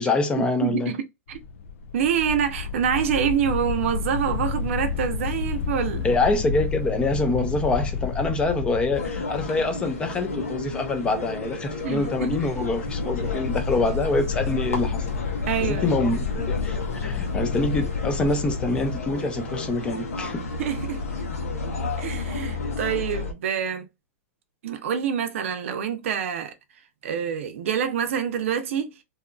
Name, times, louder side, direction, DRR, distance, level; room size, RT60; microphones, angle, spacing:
voice 1, 0.0-0.9 6.0-15.1 15.6-20.4, left 2 dB, 15° left, 0.5 m, -25 dB
voice 2, 0.6-1.4 1.9-6.1 11.8-12.4 15.5-15.9 20.6-21.0 22.0-23.8 24.6-26.5 27.0-28.9, right 8 dB, 65° right, 0.6 m, -26 dB
sound 1, 1.3-19.2, left 5 dB, 70° left, 0.5 m, -30 dB
sound 2, 8.9-23.3, left 3 dB, 90° left, 1.0 m, -33 dB
2.7 x 2.5 x 2.3 m
hypercardioid pair, 140°, 8 cm